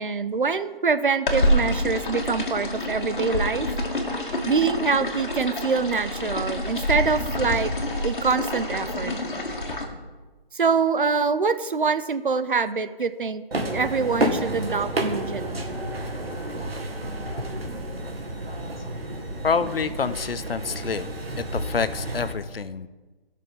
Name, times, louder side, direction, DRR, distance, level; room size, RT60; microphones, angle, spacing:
voice 1, 0.0-3.7 4.5-7.7 8.0-9.2 10.5-13.4 13.7-15.8, right 5 dB, 60° right, 13 dB, 0.7 m, -25 dB
sound 1, 1.3-9.8, left 1 dB, 55° left, 2.2 m, -27 dB
sound 2, 13.5-22.3, right 1 dB, 85° right, 2.0 m, -30 dB
voice 2, 19.4-21.1 21.4-22.9, left 5 dB, 75° left, 13 dB, 0.8 m, -27 dB
16.0 x 6.7 x 5.4 m, 1.3 s
hypercardioid pair, 175°, 29 cm